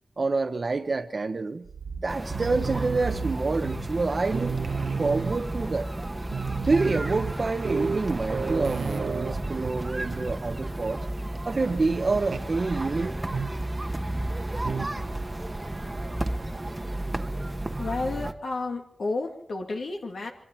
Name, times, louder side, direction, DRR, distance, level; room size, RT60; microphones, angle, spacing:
voice 1, 0.2-1.7 2.0-4.6 5.0-5.9 6.7-11.1 11.4-13.2, right 3 dB, 45° right, 5 dB, 0.9 m, -27 dB
sound 1, 1.7-4.1 4.3-5.6 6.0-6.1 6.3-10.4 10.7-11.0 12.3-12.6 13.3-13.7 14.6-15.1, right 5 dB, 90° right, 1.0 m, -32 dB
sound 2, 2.1-18.3, right 1 dB, 20° right, 1.1 m, -33 dB
voice 2, 17.8-20.3, left 3 dB, 80° left, 1 dB, 2.3 m, -31 dB
25.0 x 23.0 x 4.5 m, 0.64 s
wide cardioid pair, 110°, 0 cm